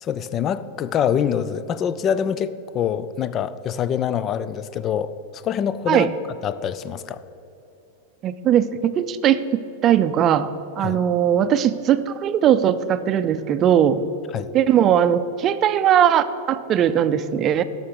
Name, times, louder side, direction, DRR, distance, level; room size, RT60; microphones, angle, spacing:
voice 1, 0.0-6.2 6.4-7.2 10.8-11.0 14.3-14.5, left 8 dB, 30° left, 15 dB, 0.4 m, -25 dB
voice 2, 8.2-14.0 14.5-17.6, right 9 dB, 35° right, 11 dB, 0.5 m, -19 dB
12.5 x 5.9 x 6.5 m, 2.9 s
hypercardioid pair, 125°, 0 cm